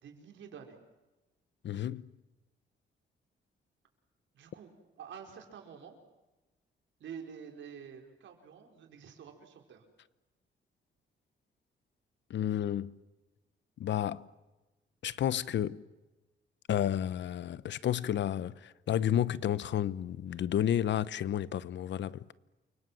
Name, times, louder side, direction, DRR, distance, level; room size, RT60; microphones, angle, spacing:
voice 1, 0.0-0.8 4.3-6.0 7.0-9.8, right 7 dB, 80° right, 5.3 m, -48 dB
voice 2, 1.6-2.1 12.3-12.9 13.8-14.2 15.0-15.8 16.7-22.3, left 10 dB, 70° left, 1.0 m, -31 dB
29.0 x 24.5 x 7.8 m
cardioid pair, 120°, 19 cm